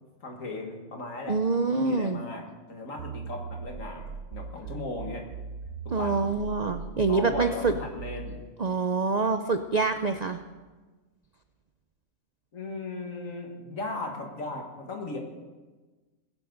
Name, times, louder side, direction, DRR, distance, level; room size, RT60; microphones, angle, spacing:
voice 1, 0.2-1.4 1.6-5.3 5.8-6.3 7.1-8.5 12.5-15.2, left 2 dB, 60° left, 1 dB, 2.2 m, -37 dB
voice 2, 1.3-2.2 5.9-7.7 8.6-10.4, right 4 dB, 70° right, 8 dB, 0.4 m, -26 dB
sound 1, 3.0-8.5, right 5 dB, 90° right, 1.1 m, -39 dB
20.0 x 10.5 x 3.9 m, 1.3 s
omnidirectional pair, 1.6 m